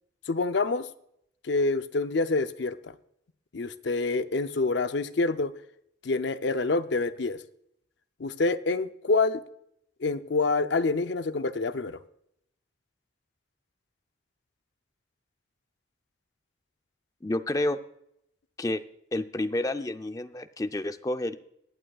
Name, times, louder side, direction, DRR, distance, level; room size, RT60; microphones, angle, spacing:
voice 1, 0.3-0.9 1.4-2.9 3.5-5.5 6.0-7.4 8.2-9.4 10.0-12.0, left 3 dB, 65° left, 11 dB, 0.6 m, -27 dB
voice 2, 17.2-17.8 18.6-18.8 19.1-21.4, left 1 dB, 20° left, 9 dB, 0.5 m, -29 dB
23.0 x 9.0 x 2.3 m, 0.76 s
head